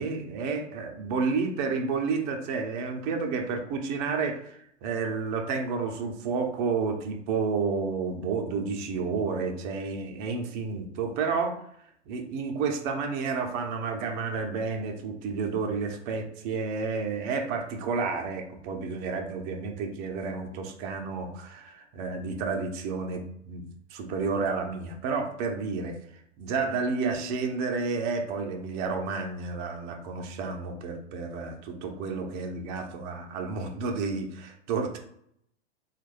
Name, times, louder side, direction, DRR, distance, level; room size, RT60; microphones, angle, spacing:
voice 1, 0.0-11.6 12.1-23.6 23.9-26.0 26.4-35.0, right 4 dB, 40° right, 4 dB, 0.8 m, -31 dB
3.5 x 2.4 x 3.3 m, 0.70 s
hypercardioid pair, 110°, 36 cm